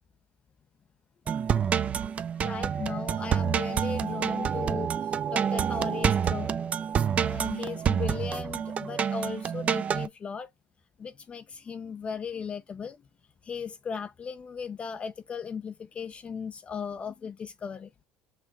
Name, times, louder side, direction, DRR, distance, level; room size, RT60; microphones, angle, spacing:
sound 1, 1.3-10.1, right 8 dB, 30° right, 0.4 m, -28 dB
voice 1, 2.4-4.9 5.3-6.6 7.2-10.5 11.0-13.0 13.4-17.9, left 6 dB, 30° left, 0.4 m, -37 dB
5.7 x 3.0 x 2.8 m
supercardioid pair, 110°, 4 cm